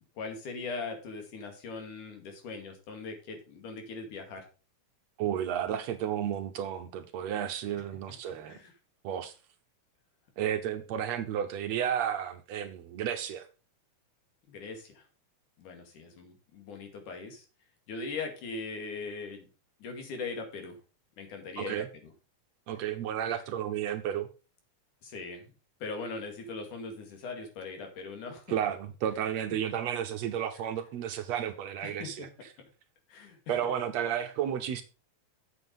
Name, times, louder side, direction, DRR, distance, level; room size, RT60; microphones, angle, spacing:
voice 1, 0.2-4.5 8.3-8.7 14.5-15.1 15.6-17.5 17.9-19.5 19.8-20.8 21.2-22.1 23.3-23.4 25.0-25.5 25.8-28.5 31.8-32.3 33.1-33.5, left 4 dB, 80° left, 3.8 m, -40 dB
voice 2, 5.2-8.6 9.0-9.4 10.4-13.5 21.6-21.9 22.7-24.3 28.5-32.3 33.5-34.8, right 9 dB, 70° right, 1.8 m, -32 dB
8.1 x 7.8 x 5.3 m
omnidirectional pair, 3.5 m